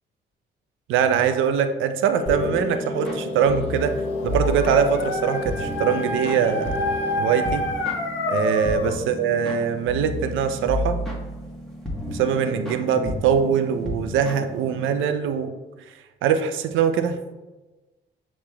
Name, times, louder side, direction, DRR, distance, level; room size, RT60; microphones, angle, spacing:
voice 1, 0.9-3.9 4.2-6.8 7.2-7.6 8.3-11.0 12.1-15.5 16.2-17.2, right 7 dB, 80° right, 8 dB, 0.5 m, -22 dB
sound 1, 2.1-7.2, left 2 dB, 30° left, 1.2 m, -32 dB
sound 2, 2.3-15.1, left 1 dB, 5° left, 1.1 m, -32 dB
Dog, 4.0-9.0, left 1 dB, 75° left, 0.6 m, -28 dB
7.1 x 3.1 x 2.2 m, 1.1 s
cardioid pair, 90°, 20 cm